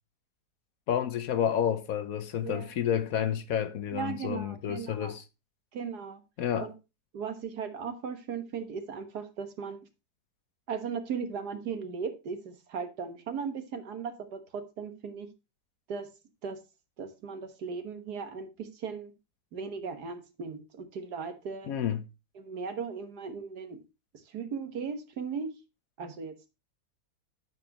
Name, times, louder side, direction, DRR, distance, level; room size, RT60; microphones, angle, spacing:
voice 1, 0.9-5.2 6.4-6.7 21.7-22.0, left 9 dB, 65° left, 1.1 m, -30 dB
voice 2, 3.9-5.2 5.7-6.2 6.6-6.7 7.1-9.8 10.7-15.3 15.9-16.1 16.4-16.6 17.0-19.1 19.5-21.8 22.4-23.8 24.1-25.6 26.0-26.3, right 6 dB, 75° right, 1.8 m, -37 dB
9.2 x 7.3 x 2.9 m
omnidirectional pair, 1.7 m